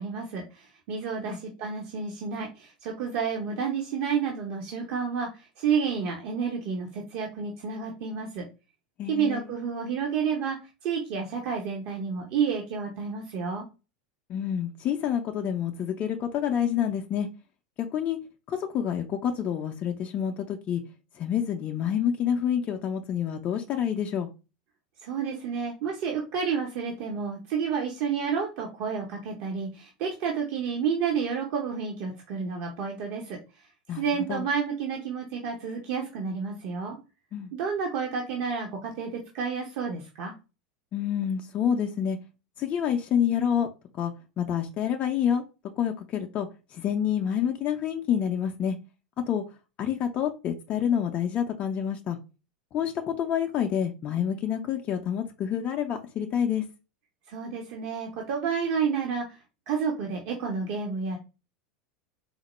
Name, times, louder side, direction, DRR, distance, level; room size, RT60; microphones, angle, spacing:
voice 1, 0.0-8.4 9.1-10.6 10.8-13.7 25.0-33.4 33.9-37.0 37.5-40.3 57.3-59.4 59.7-61.2, right 6 dB, 50° right, 0.7 m, -30 dB
voice 2, 9.0-9.5 14.3-17.3 17.8-18.2 18.5-20.8 21.2-24.3 33.9-34.0 34.3-34.5 37.3-37.5 40.9-42.2 42.6-43.7 44.0-45.4 45.8-48.8 49.3-49.4 49.8-52.2 52.7-56.6, left 9 dB, 35° left, 0.4 m, -28 dB
4.2 x 2.1 x 3.0 m
figure-of-eight pair, 85°, 5 cm